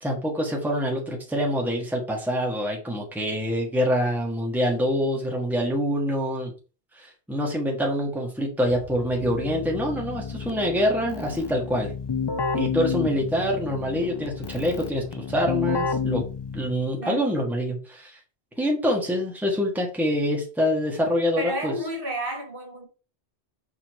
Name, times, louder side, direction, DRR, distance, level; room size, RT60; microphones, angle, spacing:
voice 1, 0.0-6.5 6.9-11.9 12.5-16.2 16.5-18.2 18.6-21.7, equal, ahead, 1.5 m, -25 dB
Keyboard (musical), 8.7-17.0, left 5 dB, 40° left, 0.3 m, -31 dB
voice 2, 21.4-22.9, right 1 dB, 55° right, 2.0 m, -31 dB
6.0 x 3.8 x 4.7 m
omnidirectional pair, 1.1 m